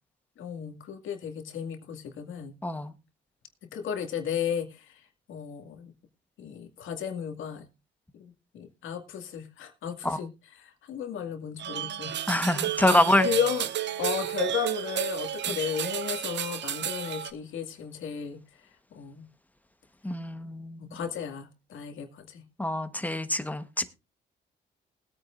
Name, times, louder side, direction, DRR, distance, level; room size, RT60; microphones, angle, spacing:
voice 1, 0.4-2.6 3.7-4.9 5.3-5.9 6.4-7.7 8.2-12.6 12.9-13.7 14.0-18.4 18.9-19.3 20.8-22.4, left 8 dB, 80° left, 2.1 m, -34 dB
voice 2, 2.6-2.9 10.0-10.2 12.3-13.3 15.5-15.6 20.0-21.0 22.6-24.0, left 1 dB, 10° left, 1.2 m, -26 dB
sound 1, 11.6-17.3, right 10 dB, 65° right, 0.8 m, -32 dB
20.0 x 9.1 x 2.5 m
cardioid pair, 90°, 20 cm